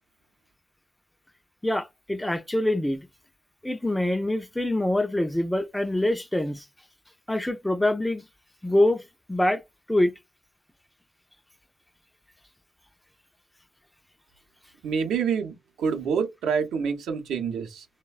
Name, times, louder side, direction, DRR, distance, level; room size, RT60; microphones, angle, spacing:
voice 1, 1.6-3.1 3.6-6.6 7.3-8.2 8.6-9.0 9.3-9.6 9.9-10.1, left 1 dB, 5° left, 0.3 m, -24 dB
voice 2, 14.8-15.5 15.8-17.8, right 6 dB, 80° right, 0.6 m, -27 dB
3.1 x 2.1 x 2.3 m
cardioid pair, 90°, 0 cm